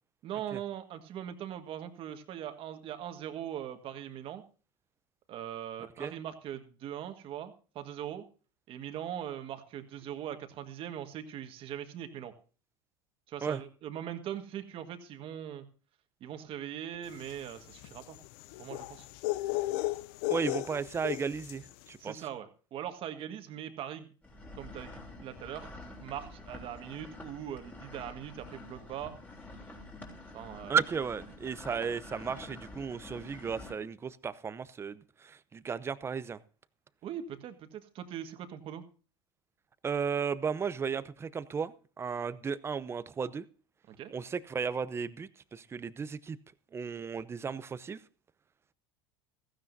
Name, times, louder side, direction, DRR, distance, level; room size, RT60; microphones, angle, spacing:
voice 1, 0.2-4.4 5.3-8.2 8.7-12.3 13.3-15.7 16.2-18.2 18.6-19.1 22.0-24.1 24.6-25.7 26.0-29.1 30.3-30.8 31.7-31.9 37.0-38.8 43.9-44.2, right 10 dB, 45° right, 1.6 m, -41 dB
sound 1, 17.2-21.7, left 18 dB, 65° left, 0.5 m, -35 dB
voice 2, 20.3-22.2 30.7-36.4 39.8-43.4 44.1-46.4 46.7-48.0, right 6 dB, 20° right, 0.7 m, -34 dB
sound 2, 24.2-33.7, left 2 dB, 15° left, 3.3 m, -48 dB
16.0 x 15.0 x 2.7 m
supercardioid pair, 120°, 13 cm